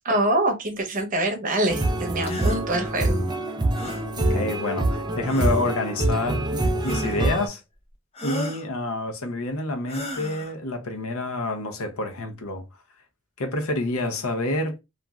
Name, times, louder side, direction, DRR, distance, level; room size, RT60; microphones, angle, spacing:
voice 1, 0.0-3.2, right 1 dB, 40° right, 0.8 m, -25 dB
sound 1, 1.7-7.5, right 1 dB, 20° right, 0.3 m, -25 dB
sound 2, 2.2-2.6 3.7-4.1 5.2-5.7 6.8-7.3 8.1-8.7 9.9-10.5, left 1 dB, 30° left, 0.6 m, -35 dB
voice 2, 4.2-6.5 6.8-7.6 8.2-12.6 13.4-14.8, left 2 dB, 80° left, 0.7 m, -28 dB
3.0 x 2.5 x 2.3 m
head